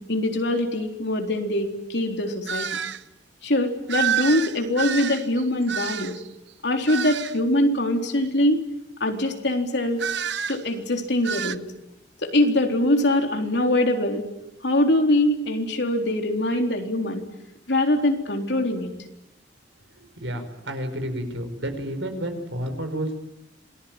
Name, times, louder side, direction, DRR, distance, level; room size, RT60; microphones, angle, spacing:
voice 1, 0.1-2.8 3.4-6.2 6.6-8.6 9.0-10.0 10.5-11.7 12.2-14.2 14.6-17.2 17.7-18.9, left 1 dB, 65° left, 3 dB, 3.8 m, -23 dB
sound 1, 2.5-3.0 3.9-6.3 6.9-7.4 10.0-10.6 11.2-11.6, right 8 dB, 65° right, 0.9 m, -28 dB
voice 2, 20.2-23.1, equal, 85° right, 7 dB, 5.2 m, -30 dB
27.0 x 20.0 x 9.5 m, 0.88 s
head